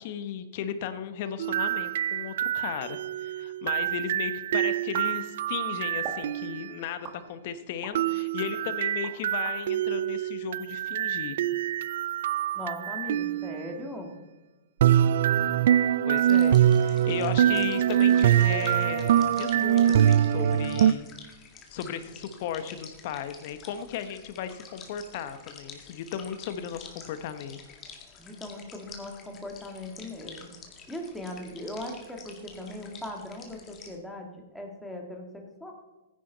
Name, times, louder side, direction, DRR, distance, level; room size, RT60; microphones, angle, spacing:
voice 1, 0.0-11.4 16.1-21.1 21.7-27.6, left 8 dB, 55° left, 11 dB, 1.1 m, -36 dB
sound 1, 1.4-6.7 7.9-13.7 14.8-20.9, right 10 dB, 70° right, 0.4 m, -24 dB
sound 2, 4.9-5.6 6.0-6.3 7.0-8.0 8.5-9.6, right 5 dB, 35° right, 2.1 m, -42 dB
voice 2, 12.5-14.1 28.2-30.4 30.9-35.7, left 1 dB, 5° left, 1 dB, 2.1 m, -39 dB
sound 3, 16.2-34.0, left 6 dB, 25° left, 2.0 m, -49 dB
15.5 x 10.0 x 4.1 m, 1.1 s
hypercardioid pair, 140°, 0 cm